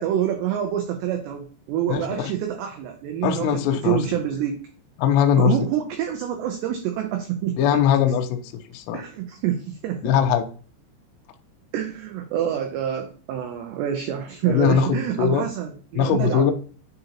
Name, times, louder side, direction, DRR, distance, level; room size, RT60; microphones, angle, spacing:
voice 1, 0.0-4.6 5.4-7.6 8.9-10.2 11.7-16.5, right 10 dB, 85° right, 5 dB, 2.4 m, -27 dB
voice 2, 1.9-2.3 3.2-4.0 5.0-5.5 7.6-8.4 8.7-9.0 10.0-10.5 14.5-14.9 15.2-15.4 16.0-16.5, left 8 dB, 85° left, 5 dB, 2.5 m, -20 dB
9.6 x 3.9 x 2.9 m, 0.40 s
omnidirectional pair, 5.7 m